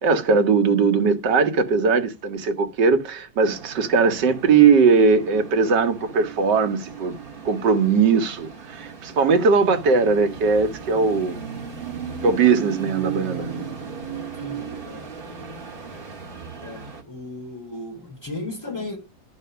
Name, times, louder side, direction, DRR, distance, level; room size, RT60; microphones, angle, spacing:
voice 1, 0.0-7.1 7.4-11.4 12.2-13.6, right 5 dB, 70° right, 1.8 m, -19 dB
sound 1, 3.4-17.0, right 7 dB, 30° right, 1.6 m, -36 dB
voice 2, 14.4-15.1 15.8-15.9 16.6-19.0, left 2 dB, 10° left, 4.7 m, -35 dB
11.0 x 4.1 x 6.8 m
omnidirectional pair, 1.9 m